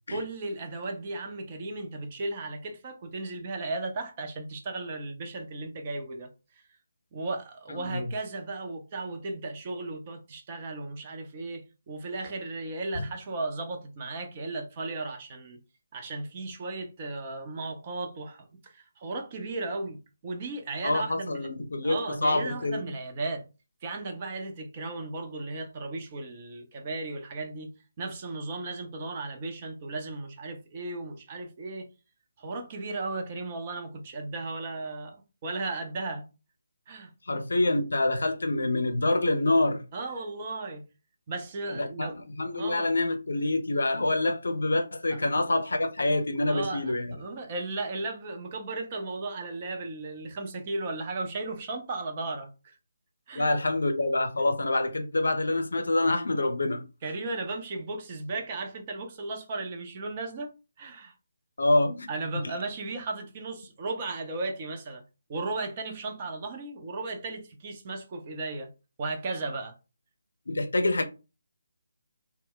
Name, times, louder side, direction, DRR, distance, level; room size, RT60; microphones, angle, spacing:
voice 1, 0.1-6.6 7.1-15.6 15.9-21.5 21.8-23.4 23.8-27.7 28.0-31.9 32.4-36.3 36.9-37.1 39.9-40.8 41.3-42.2 42.6-42.9 45.1-45.2 46.5-52.8 53.3-53.5 57.0-61.1 62.1-65.0 65.3-68.7 69.0-69.7, right 2 dB, 30° right, 0.6 m, -35 dB
voice 2, 7.7-8.1 13.0-13.1 20.8-22.8 37.3-39.8 41.7-47.2 53.3-56.8 61.6-62.5 70.5-71.0, left 2 dB, 65° left, 0.5 m, -26 dB
2.1 x 2.1 x 3.7 m
figure-of-eight pair, 145°, 0 cm